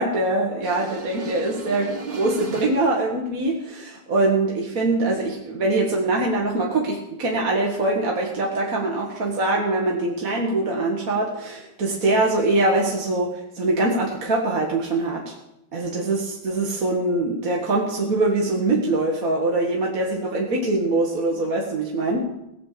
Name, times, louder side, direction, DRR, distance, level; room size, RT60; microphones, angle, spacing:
voice 1, 0.0-15.3 15.7-22.2, right 2 dB, 40° right, -2 dB, 1.9 m, -23 dB
sound 1, 0.6-3.1, right 4 dB, 25° right, 1.1 m, -35 dB
18.0 x 7.4 x 6.7 m, 0.86 s
omnidirectional pair, 2.4 m